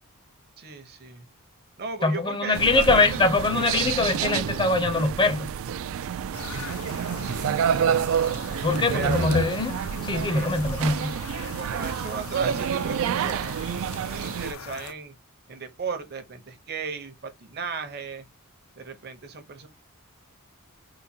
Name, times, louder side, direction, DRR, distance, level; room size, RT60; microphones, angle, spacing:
voice 1, 0.6-1.3 1.8-3.3 7.0-8.2 8.9-9.3 10.3-10.5 11.5-13.5 14.1-15.1 15.5-18.2 18.8-19.7, right 4 dB, 45° right, 0.8 m, -36 dB
voice 2, 2.0-5.5 8.6-11.2, left 3 dB, 20° left, 0.6 m, -23 dB
sound 1, 2.5-14.5, right 8 dB, 65° right, 0.3 m, -28 dB
sound 2, 6.3-14.9, left 5 dB, 70° left, 0.6 m, -38 dB
3.9 x 2.5 x 2.8 m
head